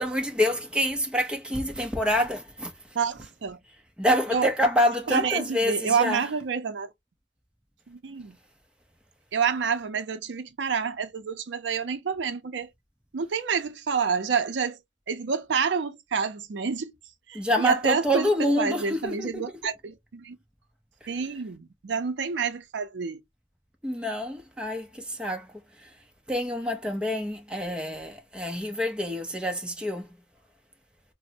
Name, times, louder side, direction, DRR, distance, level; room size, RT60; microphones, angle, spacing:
voice 1, 0.0-3.0 4.0-6.3 17.3-19.6 21.0-21.1 23.8-30.2, equal, 5° right, 0.6 m, -27 dB
voice 2, 2.9-3.6 4.3-4.5 5.1-6.9 7.9-8.4 9.3-12.7 13.1-14.8 15.1-16.9 17.3-18.3 18.6-20.4 21.1-23.2, right 6 dB, 65° right, 0.5 m, -28 dB
4.1 x 2.0 x 2.7 m
head